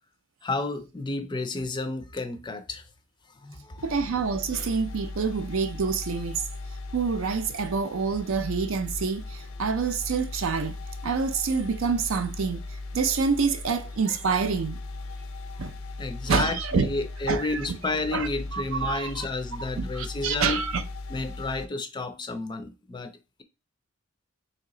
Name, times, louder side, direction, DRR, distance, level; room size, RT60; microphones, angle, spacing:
voice 1, 0.4-2.8 3.4-3.9 16.0-20.6 21.1-23.4, left 3 dB, 20° left, 0.4 m, -31 dB
sound 1, 3.8-21.7, left 2 dB, 80° left, 0.5 m, -38 dB
voice 2, 3.8-6.4 6.9-10.7 11.0-12.6 12.9-14.8 15.6-15.7 16.3-16.9 17.3-17.5 18.1-19.3 19.8-20.8, right 5 dB, 75° right, 0.5 m, -27 dB
3.2 x 2.9 x 3.7 m
head